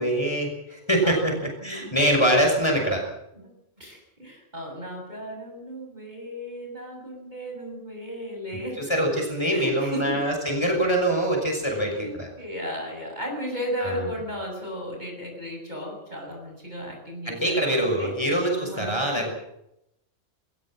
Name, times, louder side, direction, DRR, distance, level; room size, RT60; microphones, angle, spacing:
voice 1, 0.0-1.4 1.6-3.0 8.8-12.3 13.8-14.1 17.3-19.3, right 1 dB, 20° left, 2 dB, 6.1 m, -24 dB
voice 2, 1.0-1.9 3.4-3.5 3.8-8.8 9.5-10.2 11.6-18.2 18.6-19.2, equal, 35° right, 2 dB, 7.1 m, -35 dB
21.0 x 20.0 x 7.6 m, 0.81 s
omnidirectional pair, 1.3 m